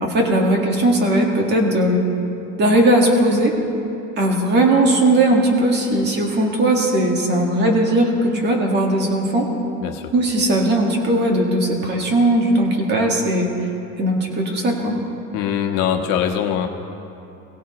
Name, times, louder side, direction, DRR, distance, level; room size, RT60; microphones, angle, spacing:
voice 1, 0.0-2.0 2.6-3.5 4.2-9.5 10.1-13.5 14.0-15.0, right 1 dB, 30° right, 0 dB, 1.9 m, -18 dB
voice 2, 9.8-10.1 15.3-16.7, left 9 dB, 70° left, 3 dB, 1.4 m, -22 dB
22.0 x 17.0 x 3.2 m, 2.8 s
cardioid pair, 170°, 33 cm